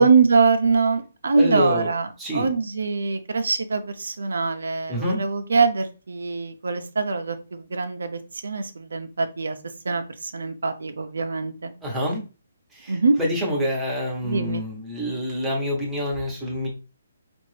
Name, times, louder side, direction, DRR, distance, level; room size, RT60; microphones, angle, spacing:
voice 1, 0.0-9.6 9.8-11.7 12.9-13.2 14.2-14.6, right 4 dB, 85° right, 7 dB, 0.7 m, -23 dB
voice 2, 1.3-1.9 2.2-2.5 4.9-5.2 11.8-12.2 12.7-16.7, equal, 5° right, -2 dB, 1.2 m, -27 dB
5.2 x 2.6 x 3.3 m, 0.32 s
hypercardioid pair, 165°, 0 cm